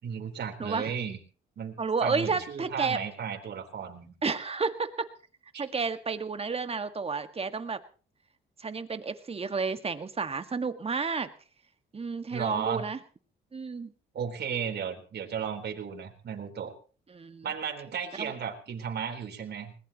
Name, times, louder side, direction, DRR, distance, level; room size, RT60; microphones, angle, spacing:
voice 1, 0.0-1.2 1.6-4.1 12.3-12.8 14.1-16.7 17.4-19.8, right 7 dB, 55° right, 2 dB, 4.0 m, -34 dB
voice 2, 0.6-0.9 1.8-3.0 4.2-5.1 5.6-7.8 8.6-11.3 11.9-13.0 13.5-13.9 17.1-17.5 18.2-18.3, right 4 dB, 30° right, 9 dB, 1.8 m, -31 dB
21.5 x 19.5 x 3.0 m, 0.38 s
cardioid pair, 90°, 20 cm